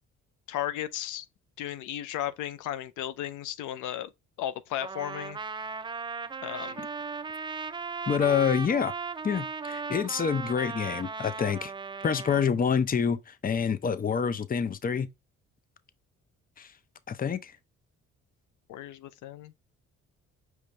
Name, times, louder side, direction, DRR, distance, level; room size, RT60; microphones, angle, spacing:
voice 1, 0.5-1.3 1.6-4.1 4.4-5.4 6.4-6.9 18.7-19.5, left 12 dB, 85° left, 0.5 m, -35 dB
Trumpet, 4.8-12.5, right 5 dB, 15° right, 0.3 m, -37 dB
voice 2, 8.1-8.9 9.2-11.7 12.0-15.1 16.6-16.7 17.1-17.5, left 7 dB, 30° left, 0.6 m, -27 dB
5.2 x 3.2 x 3.1 m
cardioid pair, 90°, 30 cm